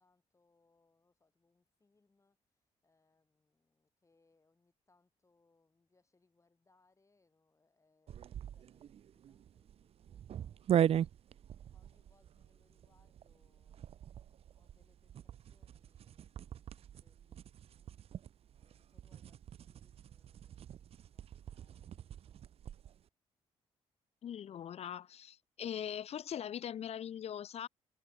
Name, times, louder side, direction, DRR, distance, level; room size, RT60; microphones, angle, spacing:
voice 1, 0.0-10.9 11.7-16.7 17.0-17.9 18.6-19.4 19.7-22.4, left 3 dB, 25° left, 7.7 m, -76 dB
sound 1, 8.1-23.0, right 10 dB, 55° right, 0.5 m, -40 dB
voice 2, 24.2-27.7, left 9 dB, 60° left, 0.8 m, -41 dB
cardioid pair, 80°, 12 cm